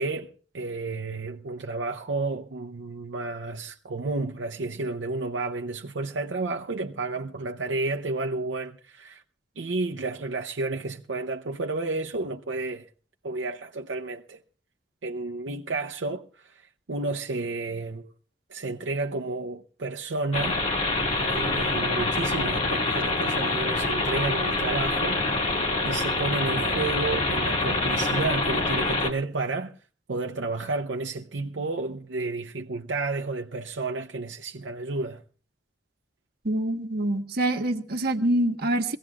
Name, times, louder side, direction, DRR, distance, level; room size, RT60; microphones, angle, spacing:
voice 1, 0.0-9.2 9.6-12.9 13.2-14.4 15.0-18.1 18.5-20.6 21.1-29.7 30.1-35.2, right 3 dB, 85° right, 0.7 m, -31 dB
sound 1, 20.3-29.1, left 2 dB, 40° left, 1.8 m, -26 dB
voice 2, 36.4-39.0, right 1 dB, 60° right, 1.2 m, -25 dB
22.5 x 16.5 x 2.4 m
head